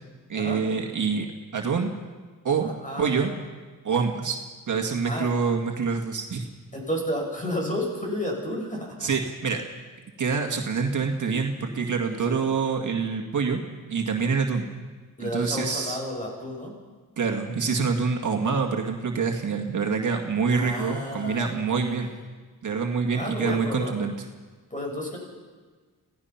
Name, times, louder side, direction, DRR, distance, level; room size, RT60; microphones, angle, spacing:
voice 1, 0.3-1.3 1.5-1.9 2.4-2.7 3.0-3.3 3.8-4.4 4.7-6.5 9.0-9.6 10.2-13.6 13.9-14.7 15.2-16.0 17.2-22.1 22.6-24.1, right 5 dB, 55° right, 3 dB, 2.0 m, -26 dB
voice 2, 2.6-3.3 5.0-5.3 6.7-9.1 12.1-12.5 15.2-16.7 20.5-22.1 23.1-23.9 24.7-25.2, equal, 20° left, -1 dB, 7.1 m, -32 dB
26.5 x 16.5 x 5.9 m, 1.4 s
cardioid pair, 100°, 36 cm